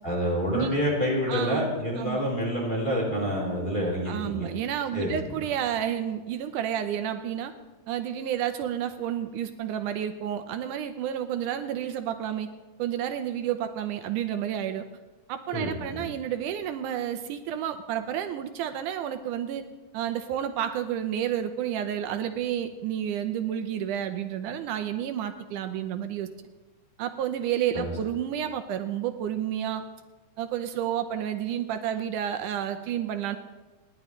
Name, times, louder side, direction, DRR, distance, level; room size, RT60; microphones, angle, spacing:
voice 1, 0.0-4.5 4.9-5.4 15.5-16.1 27.7-27.9, equal, 15° left, -4 dB, 4.0 m, -28 dB
voice 2, 1.3-1.7 2.0-2.2 4.1-7.5 7.9-12.5 12.8-14.9 15.3-19.6 19.9-26.3 27.0-29.8 30.4-33.4, right 10 dB, 80° right, 8 dB, 2.2 m, -30 dB
28.5 x 10.5 x 3.2 m, 1.2 s
omnidirectional pair, 3.7 m